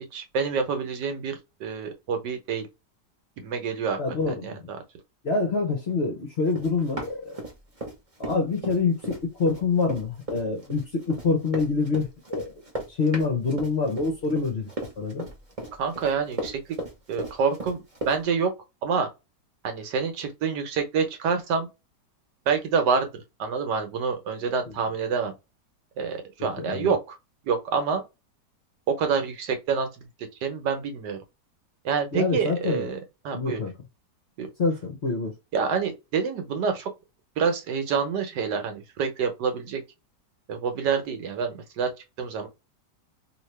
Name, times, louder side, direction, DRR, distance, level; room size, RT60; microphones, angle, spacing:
voice 1, 0.1-2.7 3.4-4.0 4.3-4.8 15.8-16.6 17.1-18.5 18.8-19.1 19.6-21.7 22.5-23.1 23.4-25.3 26.0-27.2 27.4-28.0 28.9-30.1 30.4-31.2 31.8-33.0 33.2-33.6 34.4-34.5 35.5-36.9 37.4-39.8 40.5-41.9 42.2-42.5, right 5 dB, 75° right, 1.4 m, -27 dB
voice 2, 4.0-4.7 5.2-7.4 8.2-12.5 12.9-14.7 15.0-15.2 24.7-24.8 26.6-26.9 32.1-32.9 33.3-33.7 34.6-35.3, left 4 dB, 50° left, 0.8 m, -26 dB
Run, 6.5-7.9 8.2-18.2, right 1 dB, 25° right, 0.8 m, -35 dB
2.9 x 2.7 x 3.2 m
omnidirectional pair, 1.9 m